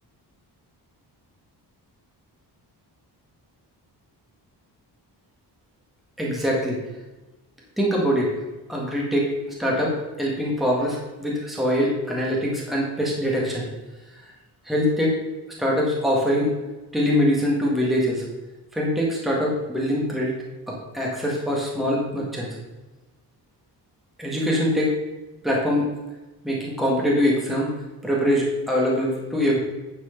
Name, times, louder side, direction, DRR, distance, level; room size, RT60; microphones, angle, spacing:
voice 1, 6.2-6.8 7.8-8.3 8.7-13.6 14.6-15.2 15.6-16.5 16.9-18.2 18.7-20.3 20.7-22.5 24.2-24.9 25.4-25.9 26.4-27.7 28.0-29.6, equal, ahead, -4 dB, 1.7 m, -23 dB
9.8 x 4.8 x 5.7 m, 1.1 s
wide cardioid pair, 180°, 41 cm